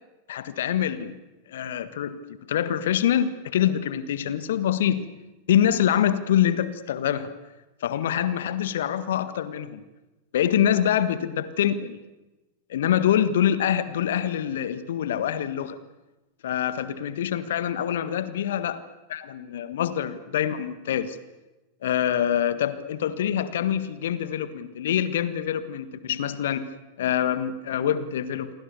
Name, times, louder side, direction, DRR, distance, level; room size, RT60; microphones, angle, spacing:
voice 1, 0.3-1.2 1.5-5.1 5.5-7.3 7.8-9.8 10.3-12.0 12.7-15.8 16.4-18.8 19.1-21.2 21.8-26.7 27.0-28.5, left 10 dB, 60° left, 13 dB, 1.6 m, -25 dB
28.5 x 23.5 x 6.9 m, 1.1 s
figure-of-eight pair, 90°, 0 cm